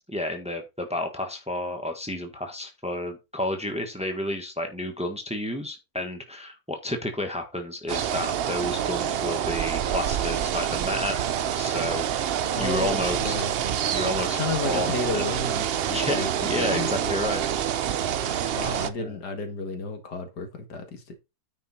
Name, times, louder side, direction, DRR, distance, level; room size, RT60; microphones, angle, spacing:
voice 1, 0.1-11.2 11.5-13.3 13.9-15.2 15.9-17.4 19.0-19.1, left 1 dB, 5° right, 1.4 m, -31 dB
sound 1, 7.9-18.9, right 9 dB, 70° right, 0.5 m, -27 dB
voice 2, 12.6-13.6 14.4-17.3 18.5-21.1, left 3 dB, 85° left, 2.3 m, -32 dB
9.3 x 5.1 x 4.3 m
omnidirectional pair, 1.7 m